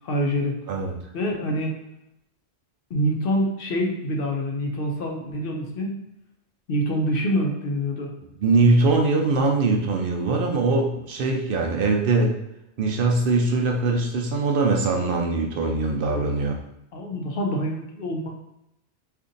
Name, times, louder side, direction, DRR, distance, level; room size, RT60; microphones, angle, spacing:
voice 1, 0.0-0.6 1.1-1.8 2.9-6.0 6.7-8.1 9.1-9.2 16.0-16.4 16.9-18.3, equal, 65° left, 1 dB, 0.8 m, -26 dB
voice 2, 8.4-12.4 12.8-16.6, right 3 dB, 65° right, 1 dB, 0.7 m, -22 dB
2.6 x 2.5 x 3.8 m, 0.83 s
omnidirectional pair, 1.1 m